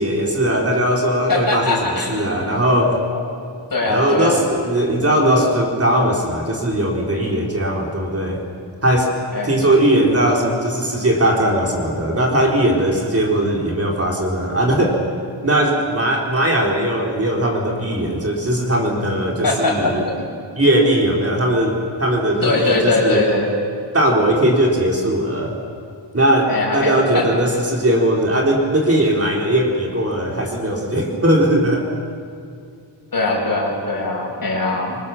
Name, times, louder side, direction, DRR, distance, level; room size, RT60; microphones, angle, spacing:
voice 1, 0.0-3.0 3.9-8.4 8.8-9.1 9.4-15.0 15.4-20.0 20.6-23.2 23.9-25.6 26.1-31.9, right 1 dB, 30° right, -1 dB, 3.9 m, -19 dB
voice 2, 1.3-2.3 3.1-3.2 3.7-4.4 9.3-9.6 19.4-20.1 22.4-23.5 26.5-27.2 33.1-35.0, left 2 dB, 45° left, -1 dB, 6.5 m, -21 dB
27.0 x 25.0 x 7.2 m, 2.4 s
wide cardioid pair, 135°, 47 cm